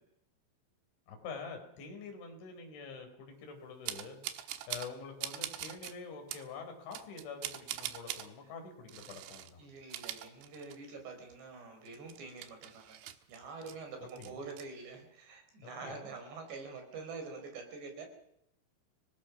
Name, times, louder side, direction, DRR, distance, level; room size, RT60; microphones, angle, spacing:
voice 1, 1.1-4.2 4.7-9.6 14.0-14.4 15.6-16.1, left 5 dB, 65° left, 3 dB, 6.3 m, -46 dB
sound 1, 3.9-4.9 5.2-5.9 6.3-6.5 6.9-8.3 8.9-9.5 9.8-11.0 11.3-11.4 11.9-13.8 14.1-14.6, right 12 dB, 75° right, 3.6 m, -42 dB
voice 2, 9.6-13.0 13.3-18.1, right 4 dB, 55° right, 5 dB, 6.4 m, -46 dB
29.5 x 19.0 x 6.0 m, 0.79 s
omnidirectional pair, 5.9 m